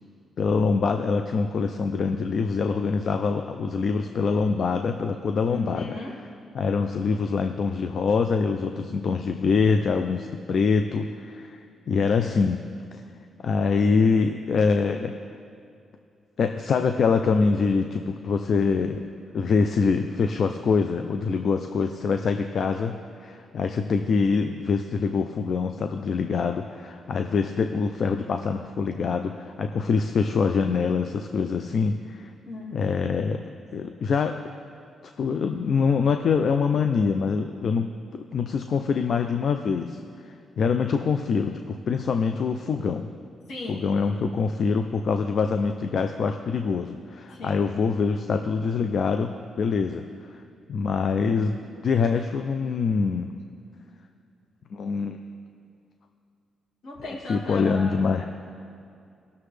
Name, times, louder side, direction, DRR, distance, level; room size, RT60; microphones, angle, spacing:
voice 1, 0.4-5.8 6.5-11.6 11.9-12.6 12.9-13.0 13.4-15.1 16.4-19.0 19.3-32.3 32.7-33.4 33.7-34.4 35.2-37.9 38.1-40.0 40.3-43.1 43.7-50.4 50.7-51.6 51.8-53.3 54.7-55.2 57.3-58.2, left 5 dB, 60° left, 7 dB, 0.5 m, -24 dB
voice 2, 5.5-6.1 32.4-33.0 43.5-43.9 47.3-47.7 56.8-58.2, left 2 dB, 80° left, -4 dB, 2.5 m, -37 dB
18.0 x 6.9 x 3.3 m, 2.4 s
cardioid pair, 70°, 0 cm